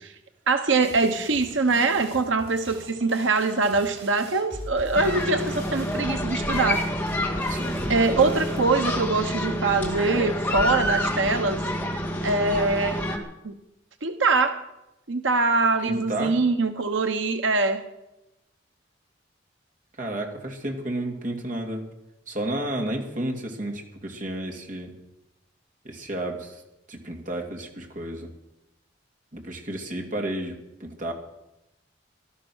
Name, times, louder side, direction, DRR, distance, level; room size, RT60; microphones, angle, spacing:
voice 1, 0.5-6.8 7.9-11.6 12.2-13.0 13.4-13.6 14.0-14.6 15.1-17.8, right 3 dB, 85° right, 7 dB, 1.1 m, -23 dB
sound 1, 0.8-8.6, right 1 dB, 70° right, 5.0 m, -43 dB
sound 2, 4.9-13.2, left 1 dB, 10° left, 2.1 m, -28 dB
voice 2, 7.5-8.4 15.8-16.4 20.0-21.8 22.3-24.9 25.8-26.6 26.9-28.3 29.3-31.1, right 1 dB, 45° right, 2 dB, 2.7 m, -32 dB
18.0 x 12.5 x 6.3 m, 0.93 s
head